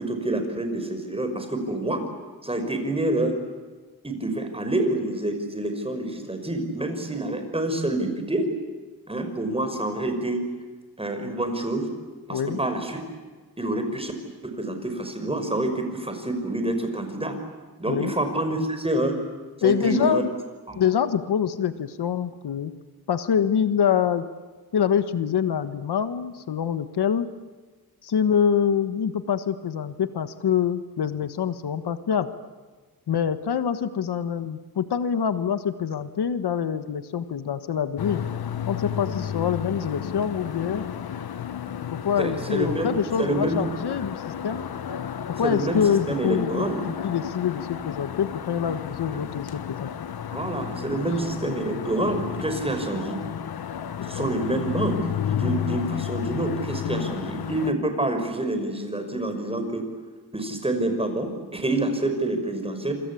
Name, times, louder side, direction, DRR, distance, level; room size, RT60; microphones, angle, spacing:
voice 1, 0.0-2.0 2.4-3.4 4.0-8.5 9.1-10.4 11.0-11.9 12.3-13.0 13.6-14.1 14.4-17.4 17.8-19.2 19.6-20.2 20.7-20.8 39.8-39.9 42.2-43.7 45.4-45.8 46.1-46.8 49.1-49.3 50.3-53.2 54.0-59.8 60.3-63.0, right 1 dB, 15° right, 6 dB, 5.6 m, -27 dB
voice 2, 19.6-20.3 20.7-22.7 23.1-24.2 24.7-27.3 28.0-32.3 33.1-38.2 38.7-40.8 41.9-44.7 45.4-49.9 51.1-51.2 54.0-54.3 56.9-57.1, left 8 dB, 90° left, 11 dB, 1.5 m, -25 dB
sound 1, 38.0-57.7, left 9 dB, 70° left, 1.2 m, -32 dB
27.0 x 25.5 x 8.5 m, 1.4 s
wide cardioid pair, 105°, 38 cm